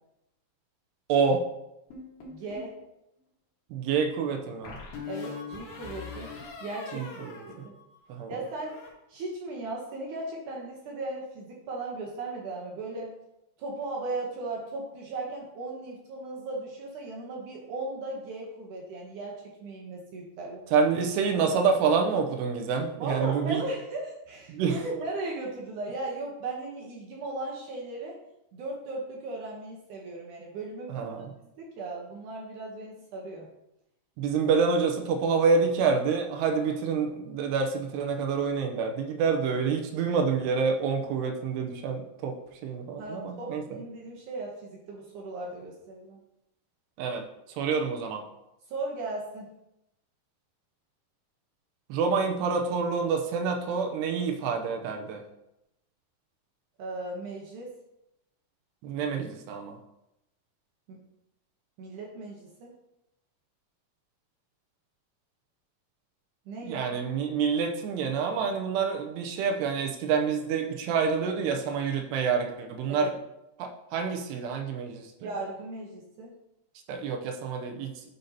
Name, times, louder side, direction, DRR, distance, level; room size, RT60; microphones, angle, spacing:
voice 1, 1.1-1.4 3.7-4.8 6.9-7.7 8.1-8.4 20.7-23.6 24.5-24.8 30.9-31.3 34.2-42.3 42.6-43.6 47.0-47.2 47.6-48.2 51.9-55.2 58.8-59.8 66.6-73.1 73.6-75.1 76.9-77.9, right 5 dB, 90° right, 4 dB, 2.9 m, -27 dB
sound 1, 1.9-2.8 4.6-8.1 8.4-8.9, left 4 dB, 65° left, 3.2 m, -42 dB
voice 2, 2.3-2.8 5.1-6.3 6.6-7.7 8.3-8.8 9.1-13.1 13.6-20.6 23.0-28.2 28.5-31.2 31.6-33.5 43.0-46.2 48.7-49.5 56.8-57.7 60.9-61.0 61.8-62.7 66.5-67.0 72.9-73.1 75.2-76.3, right 2 dB, 70° right, -1 dB, 2.0 m, -37 dB
10.5 x 5.2 x 2.8 m, 0.87 s
omnidirectional pair, 4.7 m